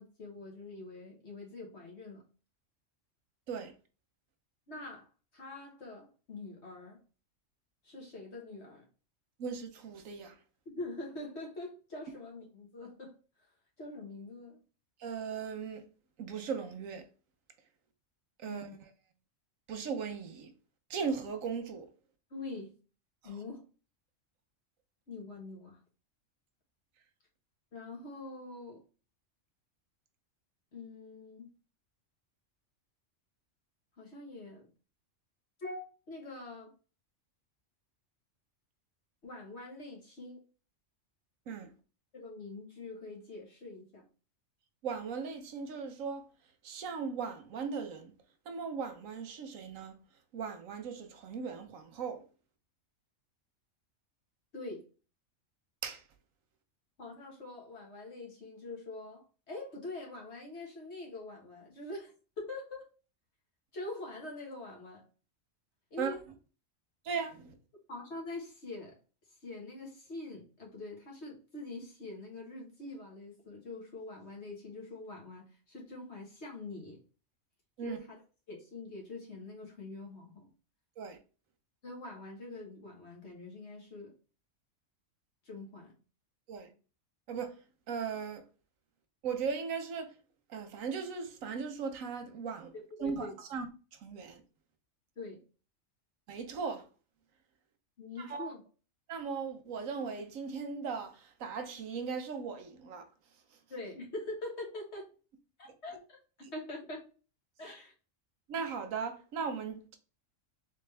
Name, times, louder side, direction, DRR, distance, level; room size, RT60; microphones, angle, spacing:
voice 1, 0.0-2.2 4.7-7.0 7.8-8.9 10.6-13.2 13.8-14.6 18.4-18.8 22.3-22.8 23.2-23.7 25.1-25.8 27.7-28.8 30.7-31.5 34.0-34.7 35.6-36.7 39.2-40.4 42.1-44.1 54.5-54.8 57.0-62.9 63.7-65.0 65.9-66.2 67.9-69.0 69.4-77.0 77.8-78.2 78.5-80.5 81.8-84.1 85.4-85.9 92.7-93.4 95.2-95.4 98.0-98.6 103.7-105.1 105.6-107.1 107.6-107.9, left 2 dB, 55° left, 1.6 m, -44 dB
voice 2, 9.4-10.3 15.0-15.8 16.2-17.0 18.4-18.7 19.7-20.5 20.9-21.9 41.5-41.7 44.8-46.2 46.6-48.1 48.5-50.0 50.3-52.2 55.8-56.0 66.0-66.1 67.0-67.5 77.8-78.0 81.0-81.2 86.5-86.7 87.3-87.5 87.9-88.4 89.2-90.1 90.5-92.7 93.0-93.7 94.0-94.4 96.3-96.8 98.3-98.5 99.1-101.1 101.4-103.0 108.5-110.0, right 5 dB, 85° right, 1.2 m, -37 dB
3.7 x 3.4 x 3.3 m
omnidirectional pair, 1.4 m